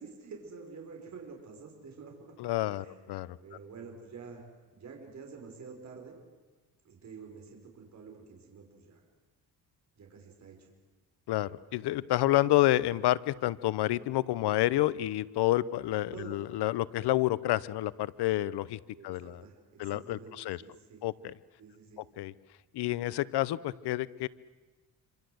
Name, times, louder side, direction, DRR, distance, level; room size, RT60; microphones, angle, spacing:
voice 1, 0.0-2.3 2.8-3.0 3.4-4.4 4.7-6.2 6.8-9.0 10.0-10.7 16.1-16.4 18.9-21.0 21.6-22.0, right 5 dB, 45° right, 1 dB, 5.4 m, -48 dB
voice 2, 2.4-3.4 11.3-19.4 19.8-20.6 21.0-21.3 22.2-22.3 22.7-24.3, left 15 dB, 85° left, 19 dB, 0.8 m, -29 dB
26.5 x 26.5 x 7.9 m, 1.2 s
cardioid pair, 145°, 39 cm